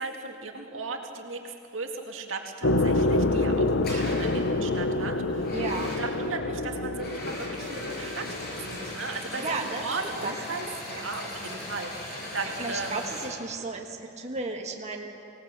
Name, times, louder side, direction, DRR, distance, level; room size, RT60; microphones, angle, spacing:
voice 1, 0.0-5.5 5.9-8.3 8.6-13.1, right 3 dB, 85° right, 3 dB, 2.1 m, -36 dB
sound 1, 2.6-8.9, left 2 dB, 70° left, 0.9 m, -27 dB
sound 2, 3.2-3.5 3.8-4.5 5.4-6.3 6.9-13.3, left 1 dB, 55° left, 6.4 m, -38 dB
voice 2, 5.5-5.9 9.4-10.3 12.6-15.1, right 3 dB, 35° right, 1 dB, 1.5 m, -34 dB
24.0 x 18.0 x 7.4 m, 2.7 s
head